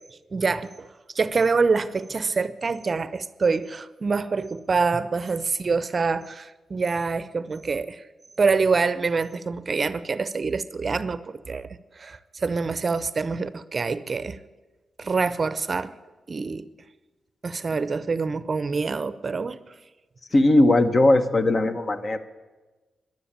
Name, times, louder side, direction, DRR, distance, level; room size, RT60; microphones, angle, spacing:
voice 1, 0.3-0.9 1.1-8.0 8.4-11.7 12.0-14.4 15.0-15.9 16.3-16.7 17.4-19.6, right 4 dB, 40° right, 15 dB, 0.6 m, -26 dB
voice 2, 20.3-22.2, left 2 dB, 40° left, 9 dB, 1.1 m, -19 dB
14.0 x 10.5 x 8.9 m, 1.2 s
cardioid pair, 95°, 0 cm